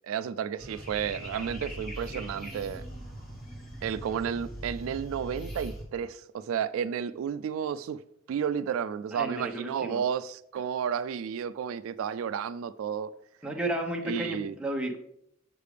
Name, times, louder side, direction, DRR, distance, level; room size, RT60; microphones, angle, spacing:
voice 1, 0.0-2.8 3.8-8.0 8.3-13.1 14.0-14.6, right 7 dB, 75° right, 0.3 m, -32 dB
sound 1, 0.6-5.8, right 1 dB, 45° left, 2.9 m, -41 dB
voice 2, 9.1-10.0 13.4-15.0, right 1 dB, 5° right, 1.0 m, -32 dB
7.4 x 6.6 x 3.3 m
head